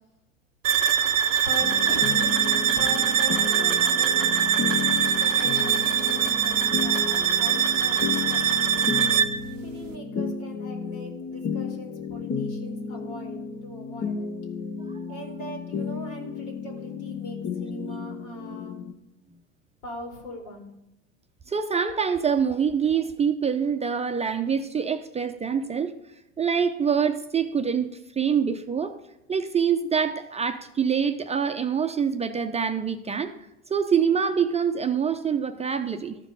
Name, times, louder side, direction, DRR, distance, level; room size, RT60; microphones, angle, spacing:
sound 1, 0.6-9.4, right 9 dB, 80° right, 0.6 m, -23 dB
voice 1, 1.5-2.3 2.8-4.4 5.2-9.0 9.6-14.3 15.1-18.7 19.8-20.7, equal, 70° left, 2 dB, 3.2 m, -40 dB
sound 2, 1.6-18.9, left 5 dB, 30° left, 0.8 m, -33 dB
voice 2, 21.5-26.0 26.4-29.0 29.3-33.3 33.7-36.2, right 7 dB, 15° right, 7 dB, 0.6 m, -25 dB
13.5 x 5.1 x 5.3 m, 0.91 s
hypercardioid pair, 85°, 37 cm